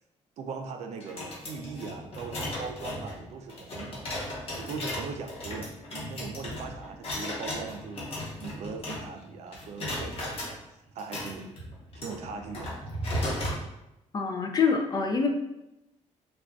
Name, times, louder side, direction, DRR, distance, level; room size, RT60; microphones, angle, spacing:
voice 1, 0.4-12.8, right 4 dB, 65° right, 5 dB, 0.4 m, -40 dB
sound 1, 1.0-9.3 9.5-10.5 11.0-13.6, left 1 dB, 50° left, 0.9 m, -36 dB
voice 2, 14.1-15.3, left 5 dB, 30° left, 4 dB, 0.3 m, -25 dB
3.5 x 2.3 x 2.3 m, 0.89 s
cardioid pair, 130°, 12 cm